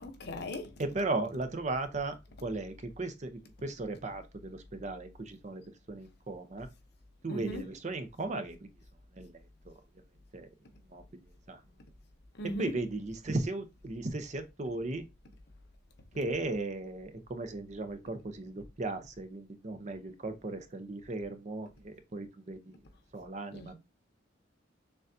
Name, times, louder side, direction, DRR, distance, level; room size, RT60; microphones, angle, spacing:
voice 1, 0.0-0.7 7.3-7.6 12.4-12.7 23.5-23.7, left 1 dB, 55° left, 0.8 m, -38 dB
voice 2, 0.8-2.2 2.4-5.6 5.9-6.7 7.2-8.6 9.1-9.3 9.7-9.8 10.3-10.5 10.9-11.0 11.5-11.6 12.4-15.1 16.2-22.8 23.1-23.7, right 2 dB, 35° right, 0.5 m, -36 dB
6.5 x 2.3 x 2.6 m
head